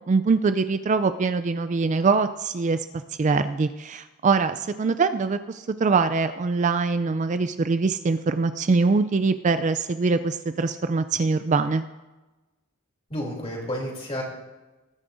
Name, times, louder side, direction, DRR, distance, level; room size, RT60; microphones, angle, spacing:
voice 1, 0.1-2.8 3.2-11.8, right 4 dB, 35° right, 11 dB, 0.3 m, -23 dB
voice 2, 13.1-14.2, equal, 30° left, -1 dB, 3.0 m, -31 dB
20.0 x 9.7 x 2.6 m, 1.1 s
head